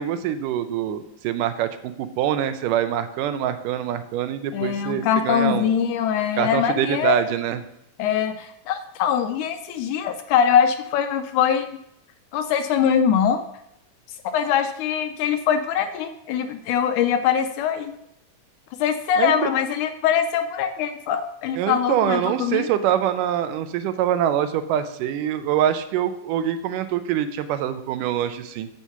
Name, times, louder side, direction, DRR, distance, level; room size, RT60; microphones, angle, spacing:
voice 1, 0.0-5.7 6.4-7.6 19.2-19.5 21.6-28.7, right 10 dB, 80° right, 11 dB, 2.2 m, -24 dB
voice 2, 4.5-7.2 8.0-11.7 12.3-13.4 14.3-17.9 18.8-22.7, left 8 dB, 80° left, 9 dB, 1.9 m, -22 dB
7.9 x 7.3 x 5.6 m, 0.81 s
omnidirectional pair, 3.8 m